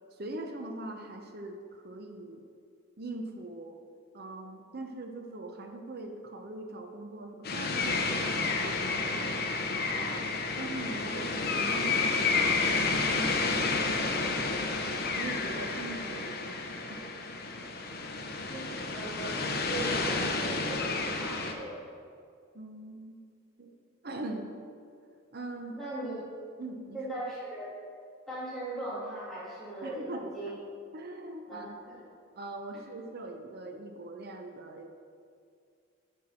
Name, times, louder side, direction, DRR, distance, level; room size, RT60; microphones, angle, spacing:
voice 1, 0.2-2.4 3.0-3.8 4.1-9.3 9.6-12.7 12.9-14.3 15.2-16.6 16.9-17.1 22.5-23.2 23.6-23.7 24.0-24.5 25.3-25.8 26.6-27.0 29.8-30.2 30.9-31.7 32.4-34.9, right 2 dB, 50° right, 4 dB, 0.7 m, -42 dB
sound 1, 7.4-21.5, left 3 dB, 50° left, 0.8 m, -30 dB
voice 2, 18.5-21.8 25.8-26.2 26.9-27.7 28.3-30.5 31.5-32.0, right 1 dB, ahead, -10 dB, 2.4 m, -39 dB
9.3 x 4.6 x 6.2 m, 2.3 s
head